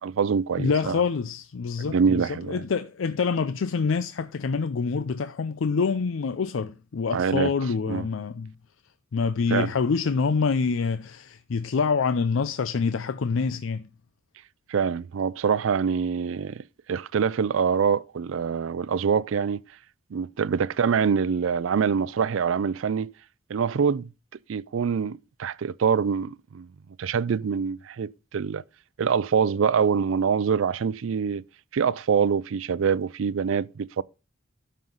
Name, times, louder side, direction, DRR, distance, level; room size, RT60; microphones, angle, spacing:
voice 1, 0.0-1.0 1.9-2.6 7.1-7.5 7.9-8.0 9.5-9.7 14.7-16.6 16.9-19.6 20.1-23.1 23.5-24.1 24.5-26.7 27.0-28.6 29.0-31.4 31.7-34.0, right 6 dB, 85° right, 0.4 m, -25 dB
voice 2, 0.6-8.5 9.1-13.9, left 5 dB, 85° left, 0.5 m, -26 dB
12.5 x 5.6 x 3.9 m
head